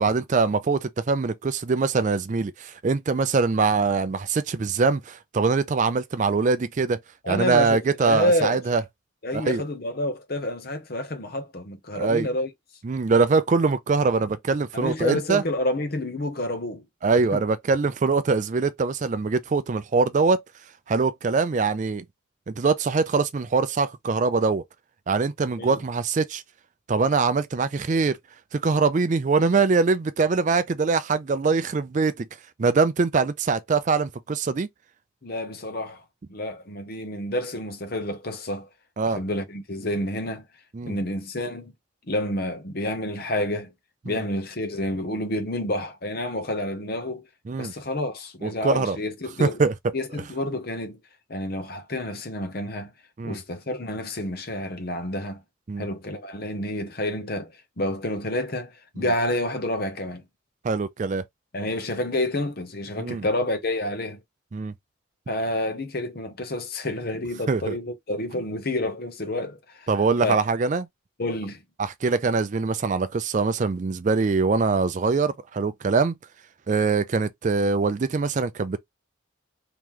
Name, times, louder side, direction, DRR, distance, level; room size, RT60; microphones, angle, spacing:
voice 1, 0.0-7.0 7.3-8.8 9.3-9.6 11.9-12.3 12.8-15.4 17.0-20.4 20.9-22.0 22.5-24.6 25.1-26.4 26.9-28.2 28.5-32.3 32.6-34.7 39.0-39.2 40.7-41.0 44.1-44.2 47.5-47.7 48.4-49.0 49.4-49.7 53.2-53.4 55.7-55.9 59.0-59.1 60.6-61.2 63.0-63.2 64.5-64.7 67.5-67.8 69.9-70.9 71.8-76.1 76.7-78.8, right 4 dB, 40° right, 0.4 m, -23 dB
voice 2, 7.2-8.6 9.2-12.5 14.7-16.8 17.3-17.4 25.6-25.8 35.2-36.0 36.3-38.7 39.0-40.4 40.8-41.7 42.1-43.7 44.0-47.3 47.6-49.6 49.9-51.0 51.3-52.9 53.2-55.4 55.8-60.2 61.5-64.2 65.3-69.9 70.2-70.4 71.2-71.6, left 1 dB, 50° left, 0.9 m, -29 dB
3.2 x 2.9 x 3.7 m
head